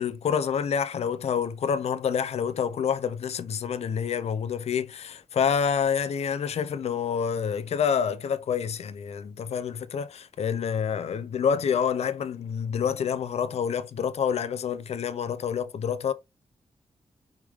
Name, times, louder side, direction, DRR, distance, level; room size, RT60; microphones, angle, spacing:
voice 1, 0.0-16.1, left 7 dB, 70° left, 0.5 m, -27 dB
5.0 x 3.4 x 3.0 m
wide cardioid pair, 180°, 11 cm